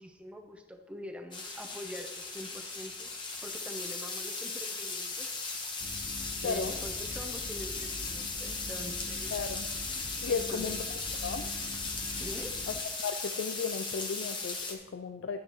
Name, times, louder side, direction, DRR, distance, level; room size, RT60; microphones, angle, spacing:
voice 1, 0.0-3.1 3.4-5.3 6.4-9.3 10.3-10.7 12.2-12.7, equal, 5° right, 4 dB, 0.8 m, -44 dB
sound 1, 1.3-14.7, left 3 dB, 25° left, 1.2 m, -37 dB
sound 2, 5.8-12.8, left 1 dB, 55° left, 0.8 m, -44 dB
voice 2, 9.3-9.7 10.2-10.8 11.2-11.5 12.7-12.8 13.0-15.4, left 5 dB, 85° left, 8 dB, 0.4 m, -34 dB
12.0 x 9.3 x 3.1 m, 1.2 s
head